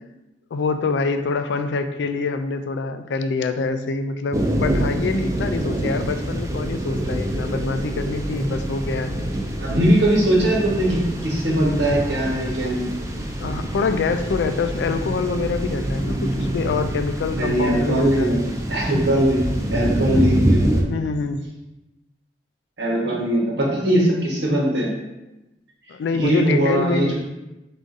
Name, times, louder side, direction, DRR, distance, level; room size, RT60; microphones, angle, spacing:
voice 1, 0.5-9.1 13.4-18.4 20.1-20.3 20.9-21.4 25.9-27.1, left 4 dB, 85° left, 9 dB, 0.3 m, -25 dB
sound 1, 4.3-20.8, right 1 dB, 20° right, 0.4 m, -25 dB
voice 2, 9.6-12.9 17.3-19.4 19.7-20.8 22.8-24.9 26.2-27.1, right 1 dB, 85° right, -3 dB, 1.1 m, -20 dB
3.6 x 2.5 x 3.8 m, 0.98 s
head